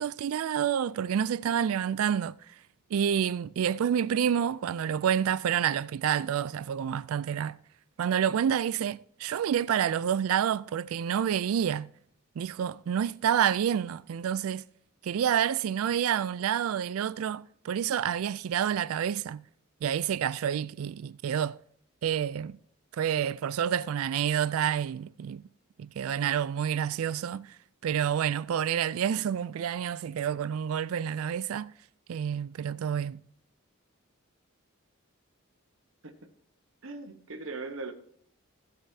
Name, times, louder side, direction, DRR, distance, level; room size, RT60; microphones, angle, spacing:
voice 1, 0.0-2.5 2.9-7.6 8.0-11.9 12.4-14.7 15.0-19.4 19.8-21.6 22.0-22.6 22.9-25.4 25.8-27.6 27.8-31.7 32.1-33.2, right 8 dB, 85° right, 0.3 m, -28 dB
voice 2, 36.8-37.9, right 3 dB, 70° right, 1.1 m, -39 dB
15.5 x 7.9 x 2.8 m
head